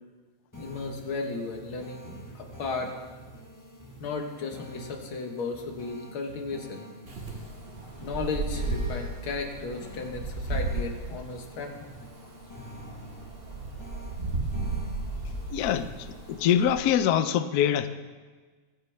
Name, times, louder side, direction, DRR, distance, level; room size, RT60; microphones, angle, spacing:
voice 1, 0.5-2.9 4.0-6.8 8.0-11.9 15.2-15.3, left 4 dB, 70° left, 3 dB, 2.2 m, -35 dB
sound 1, 0.5-16.5, equal, 15° left, 0.6 m, -47 dB
Wind, 7.1-16.9, right 3 dB, 30° right, 1.3 m, -34 dB
voice 2, 15.5-17.9, left 9 dB, 90° left, 11 dB, 0.8 m, -24 dB
20.0 x 9.4 x 3.4 m, 1.4 s
omnidirectional pair, 2.4 m